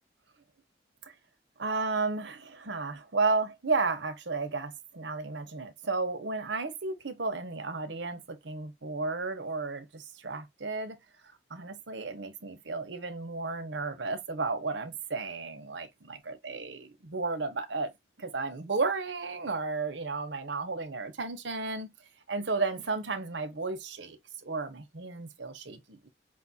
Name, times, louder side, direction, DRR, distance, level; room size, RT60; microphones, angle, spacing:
voice 1, 1.6-11.0 11.5-17.9 18.2-21.9 22.3-26.1, right 3 dB, 85° right, 1.0 m, -33 dB
5.3 x 2.6 x 2.6 m
head